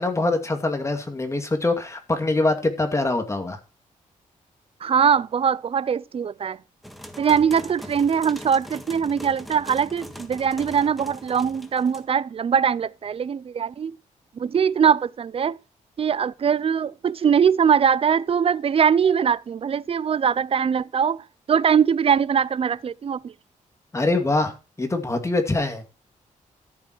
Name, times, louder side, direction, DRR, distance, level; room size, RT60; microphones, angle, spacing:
voice 1, 0.0-3.6 23.9-25.8, left 2 dB, 20° left, 2.3 m, -24 dB
voice 2, 4.8-6.6 7.2-14.0 14.4-15.6 16.0-21.2 21.5-23.3, right 7 dB, 45° right, 0.5 m, -21 dB
sound 1, 6.8-12.0, equal, ahead, 1.7 m, -41 dB
13.5 x 7.3 x 4.6 m
cardioid pair, 115°, 14 cm